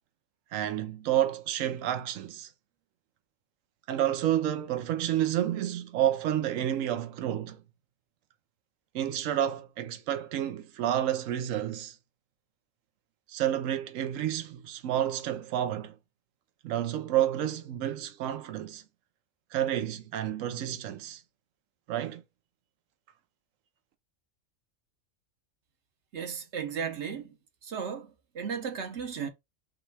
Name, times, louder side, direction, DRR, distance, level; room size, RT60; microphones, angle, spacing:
voice 1, 0.5-2.5 3.9-7.6 8.9-11.9 13.3-15.9 16.6-18.8 19.5-21.2 21.9-22.2, right 11 dB, 85° right, 1.0 m, -30 dB
voice 2, 26.1-27.4 27.6-29.3, right 6 dB, 65° right, 1.1 m, -35 dB
5.4 x 2.3 x 3.2 m
omnidirectional pair, 1.3 m